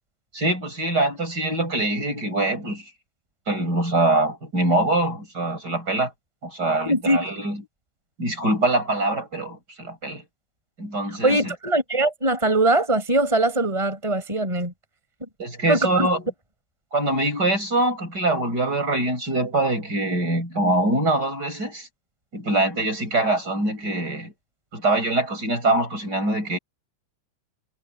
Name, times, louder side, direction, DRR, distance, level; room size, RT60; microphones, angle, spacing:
voice 1, 0.3-2.8 3.5-6.1 6.4-7.6 8.2-10.2 10.8-11.5 15.4-16.3 16.9-21.9 22.3-24.3 24.7-26.6, right 2 dB, 30° right, 7.1 m, -24 dB
voice 2, 6.9-7.2 11.2-14.7 15.7-16.1, right 2 dB, 10° right, 5.5 m, -21 dB
omnidirectional pair, 3.6 m